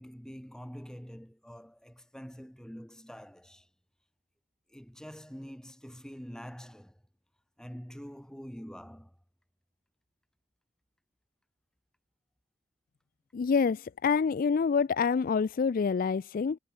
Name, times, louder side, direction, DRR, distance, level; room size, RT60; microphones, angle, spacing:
voice 1, 0.0-3.7 4.7-7.0 7.6-9.2, equal, 5° left, 1.6 m, -46 dB
voice 2, 13.3-16.6, left 5 dB, 45° left, 0.4 m, -27 dB
head